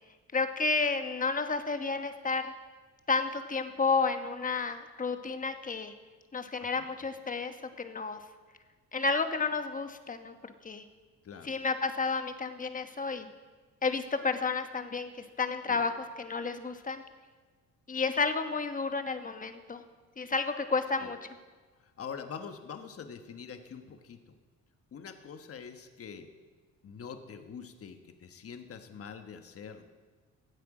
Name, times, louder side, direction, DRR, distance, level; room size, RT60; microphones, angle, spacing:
voice 1, 0.3-2.5 3.1-5.9 6.3-8.2 8.9-10.8 11.4-13.3 13.8-17.0 17.9-19.8 20.2-21.2, left 4 dB, 25° left, 8 dB, 1.1 m, -31 dB
voice 2, 6.6-7.0 11.2-11.6 15.6-15.8 21.0-21.1 21.8-24.3 24.9-26.3 26.8-29.8, left 6 dB, 50° left, 7 dB, 1.2 m, -45 dB
16.5 x 8.1 x 4.9 m, 1.4 s
cardioid pair, 90°, 30 cm